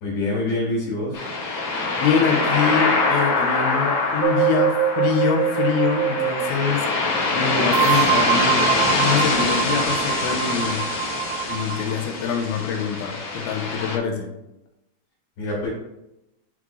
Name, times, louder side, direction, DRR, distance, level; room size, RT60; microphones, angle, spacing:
voice 1, 0.0-1.3 15.4-15.7, left 2 dB, 65° left, -7 dB, 3.6 m, -25 dB
sound 1, 1.1-14.0, left 3 dB, 45° left, 1.5 m, -24 dB
voice 2, 2.0-6.9 7.3-10.9 11.5-14.3, left 6 dB, 85° left, 2 dB, 3.3 m, -25 dB
sound 2, 4.2-6.5 7.7-12.0, right 12 dB, 90° right, 2.9 m, -24 dB
9.1 x 4.7 x 2.5 m, 0.89 s
omnidirectional pair, 5.3 m